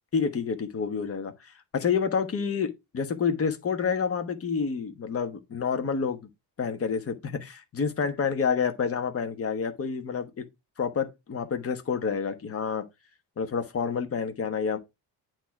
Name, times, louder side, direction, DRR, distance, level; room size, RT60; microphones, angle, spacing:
voice 1, 0.1-6.2 6.6-10.4 10.8-12.8 13.4-14.8, left 6 dB, 35° left, 1.1 m, -28 dB
8.6 x 3.0 x 5.7 m
cardioid pair, 160°, 38 cm